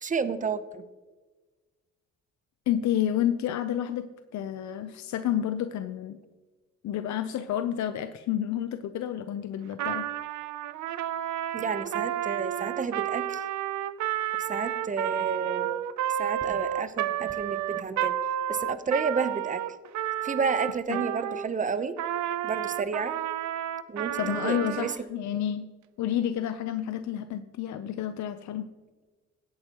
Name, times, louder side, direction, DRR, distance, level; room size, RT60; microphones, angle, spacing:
voice 1, 0.0-0.8 11.5-13.4 14.4-15.8 16.2-18.2 18.5-19.6 20.2-22.0 22.4-23.2 23.9-24.9, right 5 dB, 25° right, 12 dB, 0.8 m, -31 dB
voice 2, 2.7-6.2 6.8-10.1 20.9-21.1 24.2-25.7 26.0-28.7, left 10 dB, 70° left, 9 dB, 0.7 m, -30 dB
Trumpet, 9.7-21.5 22.0-25.0, right 12 dB, 70° right, 0.6 m, -31 dB
17.0 x 8.7 x 3.0 m, 1.3 s
cardioid pair, 90°, 30 cm